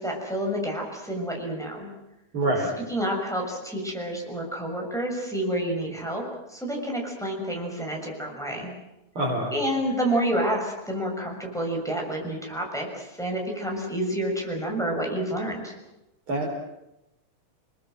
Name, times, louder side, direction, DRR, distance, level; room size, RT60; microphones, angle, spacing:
voice 1, 0.0-1.9 2.9-8.7 9.5-15.7, right 1 dB, ahead, -1 dB, 6.5 m, -29 dB
voice 2, 2.3-2.7 9.1-9.5 16.3-16.5, right 1 dB, 40° right, -4 dB, 5.1 m, -25 dB
29.0 x 20.5 x 7.8 m, 0.93 s
omnidirectional pair, 3.6 m